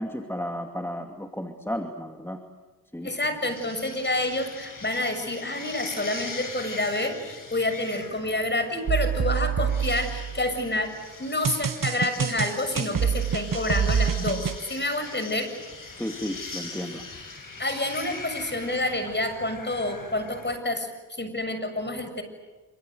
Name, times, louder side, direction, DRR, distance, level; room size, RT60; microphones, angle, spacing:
voice 1, 0.0-2.4 2.9-3.1 16.0-17.0, equal, 5° left, 4 dB, 2.5 m, -33 dB
voice 2, 3.0-15.5 17.4-22.2, left 1 dB, 25° left, 8 dB, 7.0 m, -28 dB
sound 1, 3.5-20.6, left 3 dB, 50° left, 7.8 m, -41 dB
sound 2, 8.9-10.7 11.4-14.6, right 7 dB, 50° right, 1.2 m, -26 dB
27.5 x 26.5 x 8.1 m, 1.3 s
cardioid pair, 65°, 42 cm